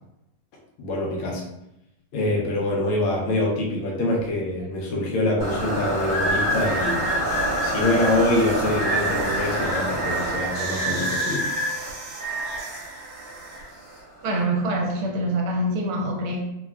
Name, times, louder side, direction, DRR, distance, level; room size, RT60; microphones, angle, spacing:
voice 1, 0.8-1.4 2.1-7.0 7.6-11.5, left 1 dB, 80° left, -2 dB, 1.6 m, -25 dB
sound 1, 4.6-4.9 6.1-8.1 8.8-9.8 10.6-11.7, equal, 60° left, 1.4 m, -27 dB
sound 2, 5.4-14.4, right 1 dB, 60° right, 1.4 m, -28 dB
voice 2, 14.2-16.5, right 1 dB, 80° right, 0 dB, 1.4 m, -25 dB
3.9 x 2.1 x 2.3 m, 0.85 s
omnidirectional pair, 2.4 m